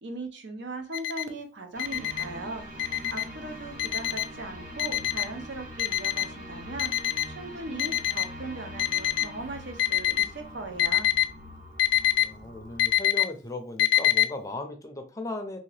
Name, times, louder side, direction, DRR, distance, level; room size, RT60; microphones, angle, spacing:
voice 1, 0.0-11.1, right 2 dB, 75° right, 5 dB, 0.6 m, -39 dB
Alarm, 0.9-1.2 1.8-2.2 2.8-3.2 3.8-4.3 4.8-5.3 5.8-6.3 6.8-7.3 7.8-8.3 8.8-9.3 9.8-10.3 10.8-11.2 11.8-12.2 12.8-13.2 13.8-14.3, left 13 dB, 85° left, 0.3 m, -24 dB
sound 1, 1.7-12.9, equal, 45° right, 0.9 m, -43 dB
voice 2, 12.2-15.6, left 2 dB, 15° left, 5 dB, 0.4 m, -37 dB
2.8 x 2.7 x 3.2 m, 0.34 s
head